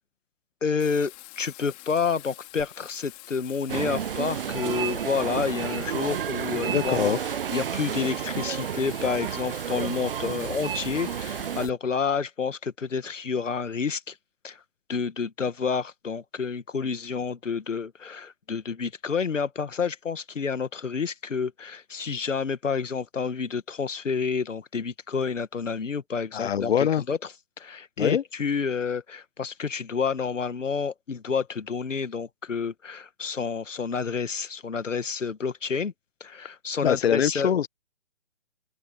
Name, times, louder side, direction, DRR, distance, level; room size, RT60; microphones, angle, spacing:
voice 1, 0.6-7.1 7.5-14.2 14.4-14.6 14.9-27.2 27.6-35.9 36.2-37.5, left 5 dB, 90° left, 1.8 m, -29 dB
Bathtub (filling or washing), 0.8-11.7, left 24 dB, 20° left, 2.8 m, -46 dB
sound 1, 3.7-11.7, right 9 dB, 50° right, 0.5 m, -31 dB
voice 2, 6.7-7.3 26.3-27.0 28.0-28.2 36.8-37.7, left 9 dB, 55° left, 1.0 m, -23 dB
open air
hypercardioid pair, 155°, 37 cm